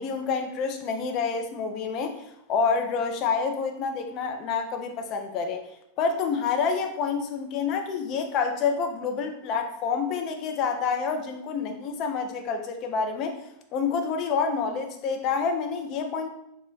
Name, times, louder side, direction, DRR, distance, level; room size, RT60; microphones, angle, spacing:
voice 1, 0.0-2.2 2.5-5.7 6.0-13.4 13.7-16.3, left 5 dB, 40° left, 5 dB, 0.4 m, -28 dB
2.5 x 2.1 x 3.4 m, 0.79 s
figure-of-eight pair, 90°, 0 cm